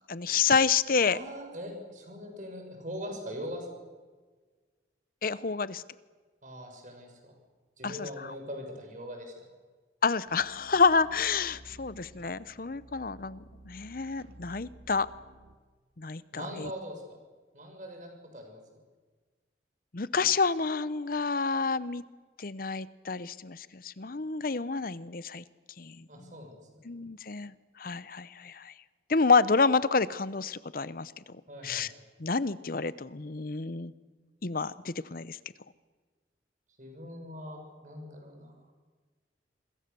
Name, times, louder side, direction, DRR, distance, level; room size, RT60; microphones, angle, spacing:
voice 1, 0.1-1.2 5.2-5.8 7.8-8.3 10.0-15.1 16.0-16.7 19.9-22.0 22.4-25.4 25.8-26.3 26.8-28.7 29.1-31.1 31.6-31.9 32.2-33.9 34.4-35.4, left 4 dB, 55° left, 16 dB, 0.8 m, -29 dB
voice 2, 1.0-3.8 6.4-7.2 7.8-9.3 16.3-17.0 17.5-18.8 26.1-26.9 31.5-31.9 36.8-38.5, equal, 45° right, 3 dB, 6.5 m, -41 dB
sound 1, 10.2-15.6, right 1 dB, 80° right, 2.4 m, -53 dB
27.0 x 22.0 x 6.9 m, 1.4 s
head